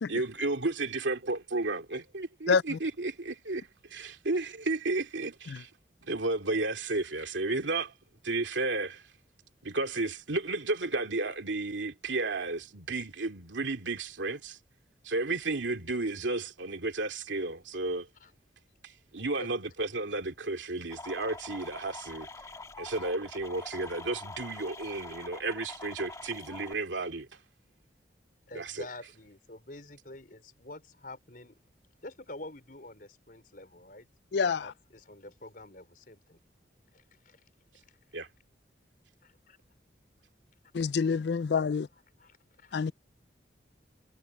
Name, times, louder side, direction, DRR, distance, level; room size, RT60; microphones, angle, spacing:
voice 1, 0.1-5.7 6.0-7.9 8.2-9.0 9.6-14.6 15.0-18.1 18.8-22.3 22.8-27.3 28.5-28.8 38.1-38.3, right 2 dB, 90° right, 2.6 m, -33 dB
sound 1, 20.9-26.7, left 2 dB, 15° left, 2.1 m, -45 dB
voice 2, 28.5-31.6 32.0-34.1 34.6-36.4 36.9-37.4 37.9-38.0 39.2-39.6 41.9-42.9, left 2 dB, 50° left, 5.0 m, -47 dB
voice 3, 34.3-34.7 40.7-41.9 42.7-42.9, left 5 dB, 65° left, 0.4 m, -26 dB
head